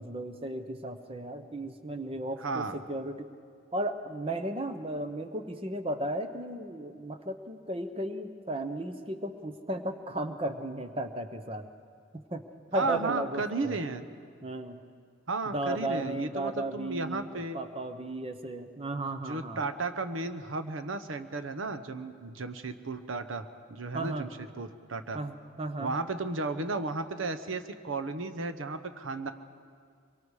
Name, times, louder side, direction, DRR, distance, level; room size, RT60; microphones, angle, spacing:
voice 1, 0.0-3.3 3.7-11.7 12.1-12.4 12.7-13.8 14.4-14.8 15.5-19.6 23.9-24.3 25.1-25.9, right 1 dB, 30° right, 8 dB, 0.9 m, -35 dB
voice 2, 2.4-2.7 12.7-14.0 15.3-17.6 19.2-24.3 24.6-25.2 25.8-29.3, right 3 dB, 80° right, 9 dB, 0.9 m, -34 dB
24.5 x 23.5 x 4.9 m, 2.1 s
head